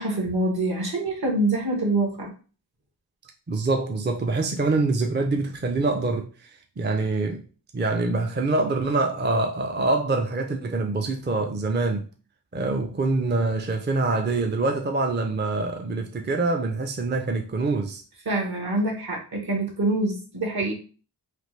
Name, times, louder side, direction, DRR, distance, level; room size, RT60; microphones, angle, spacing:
voice 1, 0.0-2.3 18.2-20.7, right 2 dB, 60° right, 1.2 m, -25 dB
voice 2, 3.5-6.5 6.8-7.4 7.7-12.0 12.5-18.0, right 3 dB, 25° right, 0.4 m, -25 dB
3.3 x 2.3 x 3.1 m
cardioid pair, 45°, 41 cm